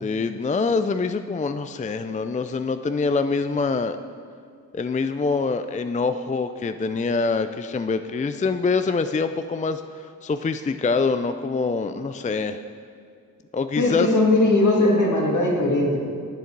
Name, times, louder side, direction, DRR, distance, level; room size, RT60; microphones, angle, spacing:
voice 1, 0.0-4.0 4.7-12.6 13.5-14.1, left 4 dB, 25° left, 9 dB, 0.4 m, -25 dB
voice 2, 13.8-16.0, left 2 dB, 65° left, -1 dB, 2.2 m, -19 dB
11.0 x 8.2 x 4.6 m, 2.3 s
cardioid pair, 60°, 33 cm